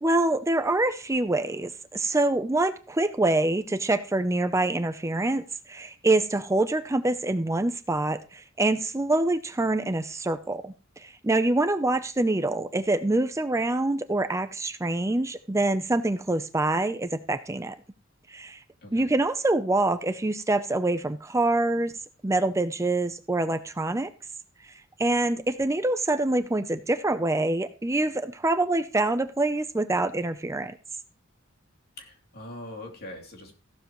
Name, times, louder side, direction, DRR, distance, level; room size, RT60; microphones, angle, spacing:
voice 1, 0.0-17.8 18.3-18.6 18.9-21.9 22.2-24.1 24.6-24.7 25.0-30.7, right 2 dB, 15° right, 10 dB, 0.5 m, -25 dB
voice 2, 32.0-33.5, left 1 dB, 50° left, 2 dB, 3.0 m, -42 dB
15.0 x 12.0 x 3.1 m, 0.34 s
head